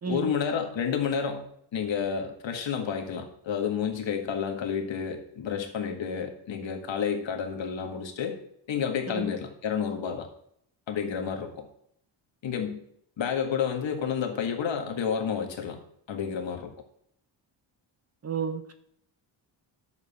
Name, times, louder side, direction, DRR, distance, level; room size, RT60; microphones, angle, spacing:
voice 1, 0.0-1.5 1.7-8.4 8.7-10.3 10.9-11.7 12.4-12.8 13.2-15.8 16.1-16.7, left 7 dB, 65° left, 4 dB, 1.9 m, -30 dB
voice 2, 18.2-18.7, right 6 dB, 30° right, 9 dB, 0.8 m, -32 dB
10.5 x 7.4 x 4.3 m, 0.69 s
cardioid pair, 115°, 49 cm